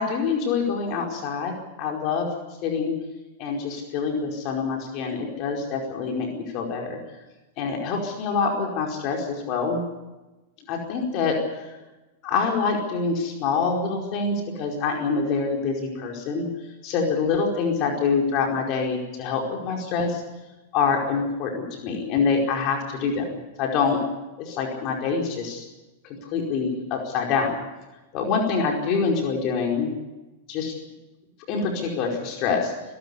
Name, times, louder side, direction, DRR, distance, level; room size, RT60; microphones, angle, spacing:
voice 1, 0.0-2.3 2.6-2.9 3.4-7.0 7.6-9.8 10.7-11.7 12.2-16.5 16.8-20.2 20.7-24.0 24.4-25.6 26.0-27.6 28.1-29.9 30.5-30.7 31.5-32.7, left 5 dB, 45° left, 1 dB, 4.8 m, -25 dB
25.0 x 13.0 x 9.8 m, 1.1 s
hypercardioid pair, 100°, 0 cm